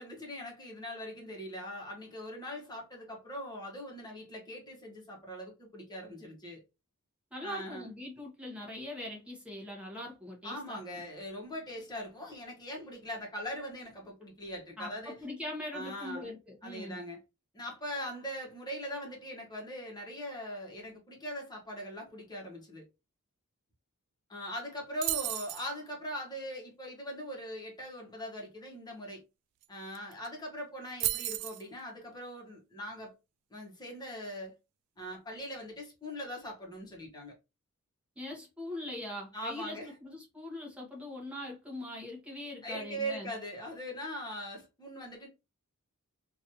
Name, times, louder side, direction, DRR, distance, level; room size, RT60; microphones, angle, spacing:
voice 1, 0.0-6.6 7.4-7.9 10.4-15.2 15.7-16.3 16.6-17.2 17.5-22.8 24.3-29.2 29.7-33.1 33.5-34.5 35.0-37.3 39.3-39.9 42.6-45.3, equal, 20° left, 1.2 m, -41 dB
voice 2, 7.3-11.0 14.8-17.0 38.2-43.3, left 1 dB, 5° right, 1.1 m, -42 dB
sound 1, 25.0-25.7 29.6-29.7 29.9-30.3 31.0-31.6, right 16 dB, 80° right, 0.3 m, -33 dB
3.0 x 2.6 x 2.7 m
head